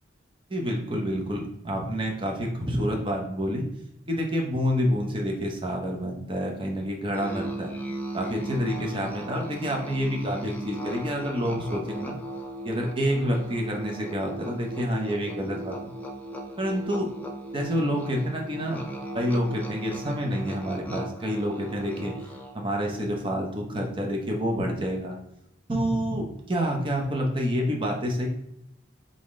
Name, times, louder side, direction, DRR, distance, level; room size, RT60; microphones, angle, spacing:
voice 1, 0.5-3.6 4.1-7.7 8.1-12.2 12.6-15.9 16.6-17.1 17.5-18.8 19.1-22.1 22.5-25.2 25.7-28.3, equal, 25° right, 0 dB, 0.9 m, -28 dB
Musical instrument, 7.1-22.7, right 1 dB, 10° left, 0.5 m, -38 dB
3.8 x 3.7 x 3.7 m, 0.79 s
head